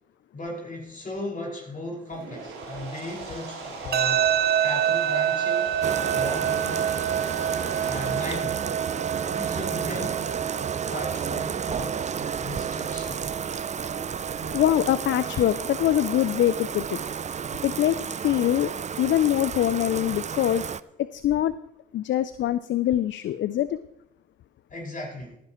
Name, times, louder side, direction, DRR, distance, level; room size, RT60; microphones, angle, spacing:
voice 1, 0.3-4.3 4.6-5.8 6.1-6.9 7.8-8.7 9.3-10.4 10.9-12.0 12.4-13.3 24.7-25.4, left 1 dB, 40° left, -3 dB, 5.6 m, -36 dB
sound 1, 2.0-8.4, right 4 dB, 80° right, 4.0 m, -39 dB
sound 2, 3.9-16.9, right 10 dB, 50° right, 0.8 m, -29 dB
Bathtub (filling or washing), 5.8-20.8, right 7 dB, 35° right, 0.5 m, -31 dB
voice 2, 14.5-17.0 17.6-18.0 18.2-18.7 19.0-20.6 21.1-21.5 21.9-23.8, left 12 dB, 60° left, 15 dB, 0.5 m, -23 dB
17.5 x 11.0 x 3.1 m, 0.80 s
supercardioid pair, 50°, 21 cm